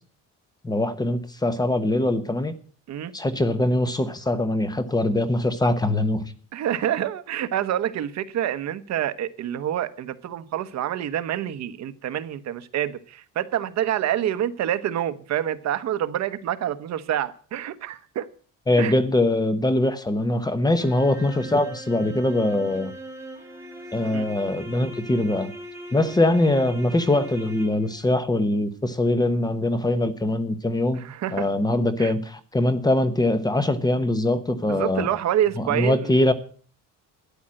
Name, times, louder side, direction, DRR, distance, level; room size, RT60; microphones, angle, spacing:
voice 1, 0.6-2.5 3.1-6.3 18.7-22.9 23.9-25.5 25.9-31.0 31.3-35.1 35.6-36.3, left 1 dB, 10° left, 1.0 m, -22 dB
voice 2, 6.5-18.3 18.8-19.0 24.1-24.3 30.9-31.5 32.0-32.1 34.7-36.1, right 11 dB, 55° right, 1.0 m, -27 dB
sound 1, 20.8-28.1, equal, 10° right, 2.7 m, -40 dB
13.0 x 10.0 x 7.6 m
cardioid pair, 165°, 33 cm